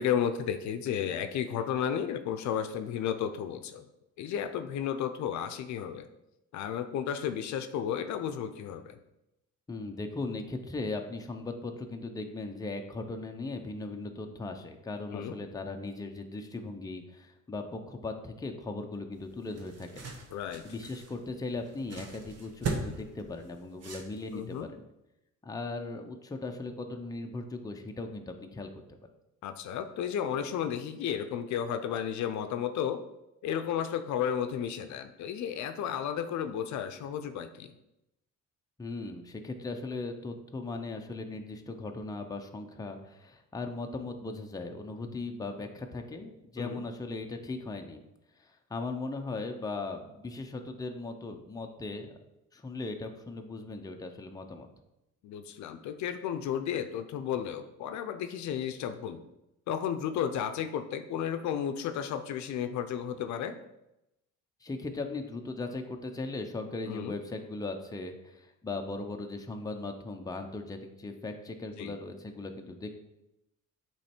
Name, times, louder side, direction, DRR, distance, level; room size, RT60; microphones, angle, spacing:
voice 1, 0.0-3.9 4.2-6.1 6.5-9.0 15.1-15.4 20.3-20.6 24.3-24.7 29.4-33.0 33.4-37.7 46.6-46.8 55.2-59.2 59.7-63.5 66.9-67.2 71.8-71.9, left 9 dB, 65° left, 8 dB, 0.6 m, -33 dB
voice 2, 9.7-20.1 20.6-24.8 25.4-28.7 38.8-48.0 48.4-52.2 52.5-54.7 64.6-73.0, left 3 dB, 10° left, 4 dB, 0.6 m, -38 dB
sound 1, 19.2-24.6, right 4 dB, 55° right, 1.2 m, -40 dB
8.3 x 3.2 x 4.4 m, 0.90 s
cardioid pair, 110°, 30 cm